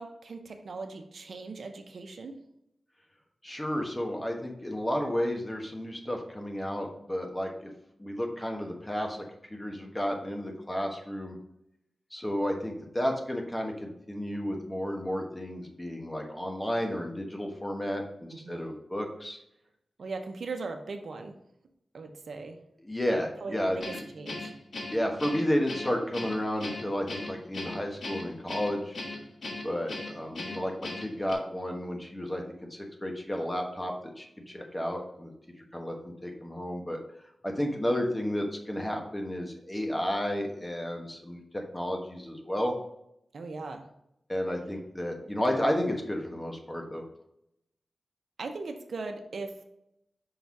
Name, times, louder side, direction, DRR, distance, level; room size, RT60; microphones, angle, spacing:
voice 1, 0.0-2.4 18.3-18.7 20.0-21.4 21.9-22.6 23.4-24.5 43.3-43.8 48.4-49.5, right 3 dB, 70° right, 5 dB, 0.8 m, -39 dB
voice 2, 3.4-7.7 8.0-9.2 9.5-11.4 12.1-19.4 22.8-23.8 24.9-29.0 29.6-35.3 35.7-37.0 37.4-42.7 44.3-47.0, equal, 15° left, 2 dB, 1.2 m, -32 dB
Guitar, 23.8-31.3, left 2 dB, 65° left, 1.4 m, -39 dB
5.6 x 4.0 x 4.7 m, 0.80 s
wide cardioid pair, 95°, 0 cm